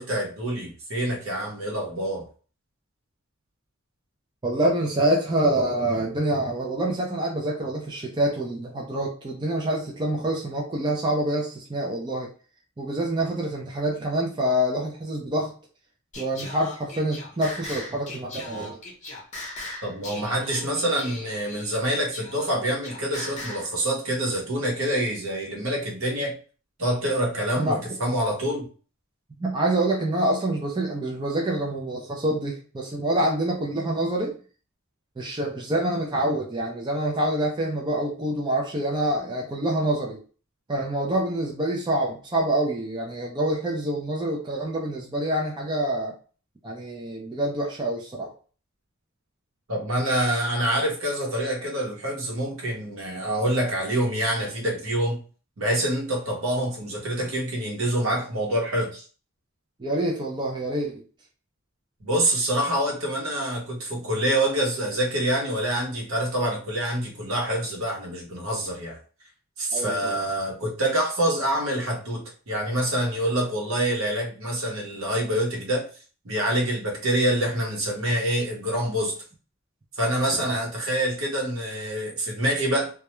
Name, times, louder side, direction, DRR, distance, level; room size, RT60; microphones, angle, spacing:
voice 1, 0.0-2.3 19.8-26.3 26.8-28.7 49.7-55.2 55.6-59.0 62.0-69.0 69.6-75.9 76.2-79.1 80.0-82.9, right 1 dB, 75° right, -1 dB, 0.9 m, -26 dB
voice 2, 4.4-12.3 12.8-15.5 16.2-18.8 27.6-27.8 29.4-34.4 35.2-40.2 40.7-46.1 46.6-48.3 59.8-60.9 69.7-70.2 80.4-80.6, right 1 dB, 20° right, -1 dB, 0.4 m, -26 dB
Singing, 16.1-23.7, left 2 dB, 35° left, 0.7 m, -39 dB
2.2 x 2.1 x 2.9 m, 0.39 s
head